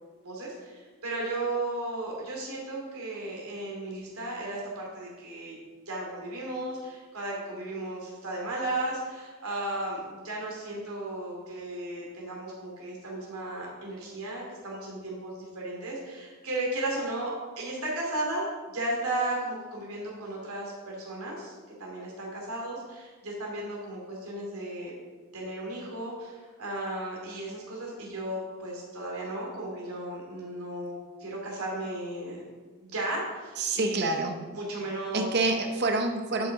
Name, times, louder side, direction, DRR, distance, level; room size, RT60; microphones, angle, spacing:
voice 1, 0.2-5.6 5.9-21.5 21.8-24.9 25.3-32.4 32.8-34.2 34.5-35.3, right 1 dB, 90° right, -3 dB, 2.7 m, -35 dB
voice 2, 33.6-34.4 35.1-36.5, right 2 dB, 50° right, 5 dB, 0.7 m, -27 dB
11.5 x 5.6 x 4.7 m, 1.4 s
head